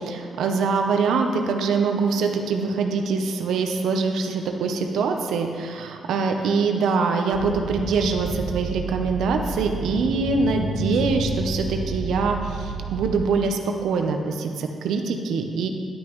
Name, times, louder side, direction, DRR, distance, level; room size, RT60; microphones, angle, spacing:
voice 1, 0.0-15.7, right 4 dB, 85° right, 4 dB, 0.7 m, -24 dB
sound 1, 7.3-13.1, right 3 dB, 60° right, 1.0 m, -31 dB
10.5 x 9.4 x 3.1 m, 2.3 s
cardioid pair, 165°, 0 cm